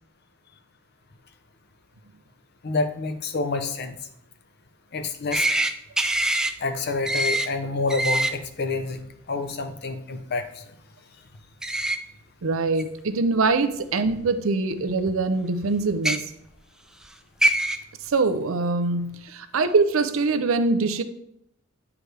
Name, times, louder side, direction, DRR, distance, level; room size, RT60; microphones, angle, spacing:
voice 1, 2.6-4.0 4.9-5.5 6.6-10.6, left 3 dB, 50° left, 8 dB, 0.7 m, -28 dB
sound 1, 5.3-5.7 6.0-6.5 7.0-7.5 7.9-8.3 11.6-12.0 12.8-12.9 14.1-14.2 15.9-16.2 17.0-17.1 17.4-17.8, right 1 dB, 5° right, 0.3 m, -23 dB
voice 2, 12.4-16.3 18.0-21.0, right 3 dB, 70° right, 9 dB, 0.6 m, -23 dB
9.1 x 4.8 x 3.3 m, 0.77 s
head